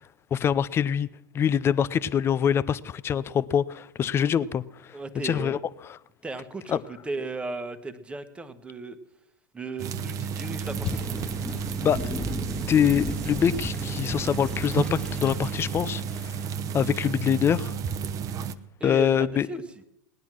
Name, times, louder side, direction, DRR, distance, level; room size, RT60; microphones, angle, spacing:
voice 1, 0.3-1.1 1.3-5.0 5.2-5.6 6.7-6.8 11.8-12.1 12.7-16.4 16.7-17.7 18.8-19.5, left 8 dB, 25° left, 0.6 m, -24 dB
voice 2, 4.9-5.6 6.2-9.0 9.5-11.1 18.8-19.6, right 2 dB, 10° right, 1.3 m, -35 dB
sound 1, 9.8-18.5, right 7 dB, 30° right, 0.8 m, -32 dB
Thunder / Rain, 10.6-16.4, left 1 dB, 5° left, 1.7 m, -37 dB
18.0 x 10.5 x 6.2 m
hypercardioid pair, 100°, 11 cm